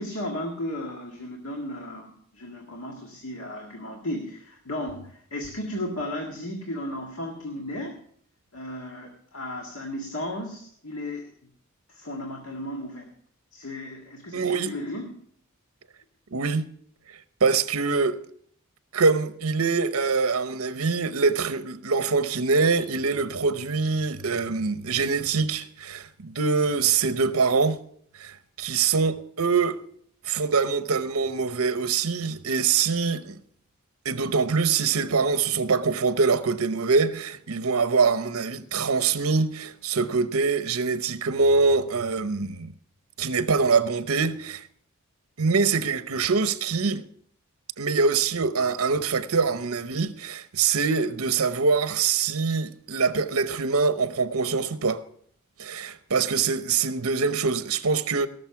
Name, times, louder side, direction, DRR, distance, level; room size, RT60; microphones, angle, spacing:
voice 1, 0.0-8.0 8.5-11.5 11.9-13.1 13.5-15.2, left 1 dB, 70° left, 1.8 m, -35 dB
voice 2, 14.3-14.7 16.3-16.7 17.4-18.2 18.9-27.8 28.2-29.8 30.2-33.4 34.0-42.7 43.2-44.6 45.4-47.0 47.8-55.0 55.6-58.3, right 4 dB, 75° right, 0.8 m, -24 dB
18.0 x 6.6 x 5.8 m
head